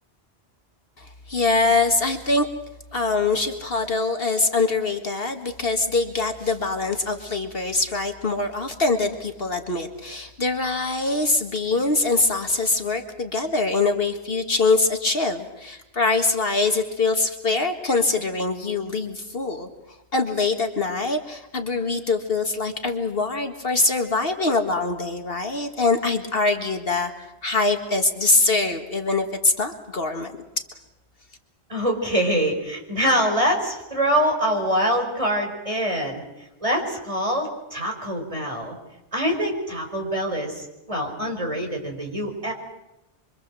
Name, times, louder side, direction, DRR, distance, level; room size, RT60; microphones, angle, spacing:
voice 1, 1.0-2.5 2.9-19.7 20.1-30.6, left 3 dB, 55° left, 5 dB, 2.0 m, -23 dB
voice 2, 31.7-38.8 39.1-42.5, equal, 30° right, 1 dB, 4.9 m, -24 dB
25.5 x 25.0 x 7.6 m, 0.93 s
omnidirectional pair, 1.2 m